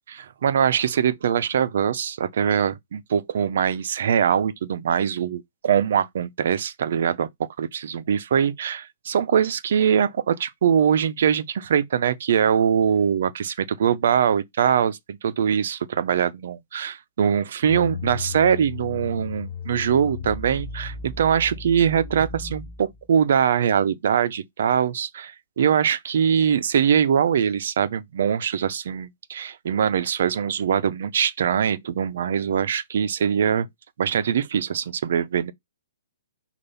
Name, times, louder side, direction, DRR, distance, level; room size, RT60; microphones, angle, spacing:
voice 1, 0.2-33.7 34.0-35.5, right 8 dB, 45° right, 0.6 m, -22 dB
sound 1, 17.6-23.1, left 5 dB, 20° left, 0.7 m, -35 dB
6.7 x 2.5 x 5.6 m
hypercardioid pair, 180°, 0 cm